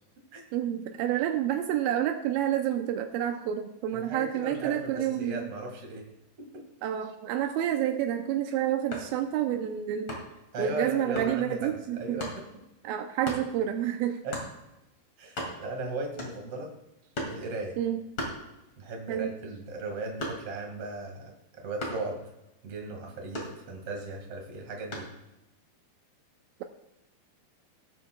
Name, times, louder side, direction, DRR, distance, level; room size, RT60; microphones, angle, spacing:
voice 1, 0.5-5.5 6.8-10.2 10.6-12.2 12.8-14.2 17.8-18.0 19.1-19.3, right 11 dB, 90° right, 5 dB, 2.1 m, -29 dB
voice 2, 3.9-6.0 6.4-6.6 10.5-12.5 14.2-14.4 15.2-16.7 17.3-17.8 18.8-22.2 22.6-25.1, right 2 dB, 45° right, 1 dB, 2.3 m, -37 dB
sound 1, 8.9-9.2 10.1-10.4 11.2-11.4 12.2-12.4 13.2-13.5 14.3-14.6 15.0-15.1 15.2-15.8 16.2-16.6 17.1-17.5 18.2-18.9 19.3-20.7 21.8-22.1 23.3-24.0 24.9-25.2, left 1 dB, 35° left, 2.5 m, -37 dB
17.5 x 9.2 x 2.3 m, 0.93 s
omnidirectional pair, 4.8 m